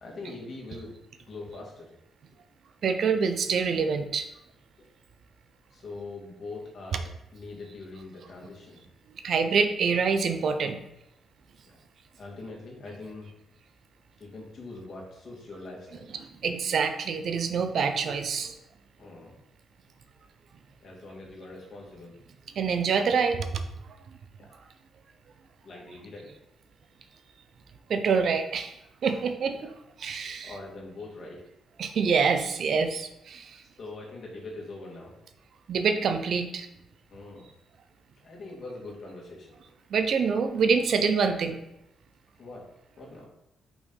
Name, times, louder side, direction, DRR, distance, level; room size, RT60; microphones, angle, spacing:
voice 1, 0.0-1.9 5.7-7.0 7.3-8.9 11.6-11.8 12.2-13.3 14.2-16.1 19.0-19.4 20.8-22.2 24.4-24.6 25.6-26.3 29.0-29.2 29.5-29.7 30.1-31.4 33.8-35.1 37.1-37.5 38.2-39.6 42.4-42.7 43.0-43.3, left 2 dB, 50° left, -2 dB, 2.2 m, -43 dB
voice 2, 2.8-4.3 9.2-10.8 16.4-18.5 22.5-23.6 27.9-28.8 29.0-29.6 30.0-30.5 31.8-33.6 35.7-36.7 39.9-41.6, right 5 dB, 55° right, 8 dB, 0.7 m, -26 dB
5.9 x 4.2 x 5.4 m, 0.83 s
cardioid pair, 145°, 0 cm